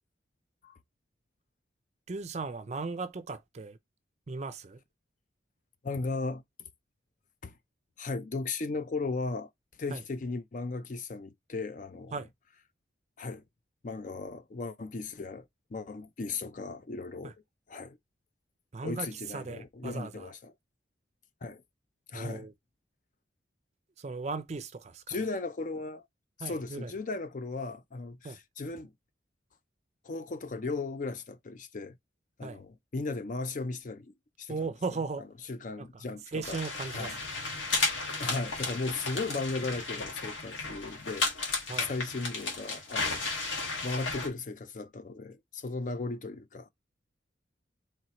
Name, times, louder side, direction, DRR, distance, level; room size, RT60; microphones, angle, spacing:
voice 1, 2.1-3.8 4.3-4.8 9.9-10.0 12.1-12.3 17.2-17.3 18.7-20.3 22.1-22.5 24.0-25.2 26.4-26.9 28.2-28.4 32.4-32.6 34.5-35.3 35.8-35.9 36.3-37.1 41.7-41.9, right 4 dB, 35° right, 0.4 m, -37 dB
voice 2, 5.8-6.4 7.4-7.5 8.0-9.5 9.8-12.2 13.2-13.4 13.8-17.3 17.7-18.0 18.8-20.5 21.4-21.6 22.1-22.5 25.1-26.0 26.4-28.9 30.0-32.0 32.4-34.6 35.5-36.6 36.9-37.1 38.2-41.3 41.8-43.3 43.8-46.7, left 3 dB, 40° left, 0.4 m, -36 dB
sound 1, 36.4-44.3, left 3 dB, 85° left, 1.6 m, -34 dB
4.4 x 3.0 x 2.9 m
head